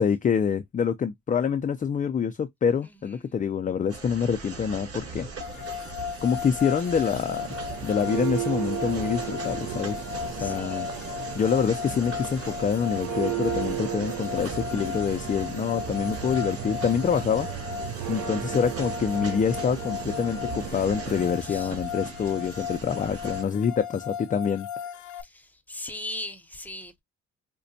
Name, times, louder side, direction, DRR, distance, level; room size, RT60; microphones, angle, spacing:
voice 1, 0.0-5.3 5.5-5.6 6.2-7.5 7.8-10.9 11.3-17.5 18.1-24.7, left 7 dB, 25° left, 0.4 m, -26 dB
voice 2, 2.8-3.4 10.4-11.1 18.0-18.1 21.4-21.8 24.0-24.1 25.1-27.0, left 1 dB, 5° left, 0.8 m, -40 dB
sound 1, 3.9-23.4, right 4 dB, 50° right, 1.6 m, -41 dB
sound 2, 5.4-25.2, left 8 dB, 75° left, 0.5 m, -36 dB
Church bell, 7.2-21.4, right 11 dB, 65° right, 0.6 m, -35 dB
5.0 x 2.2 x 2.6 m
cardioid pair, 90°, 30 cm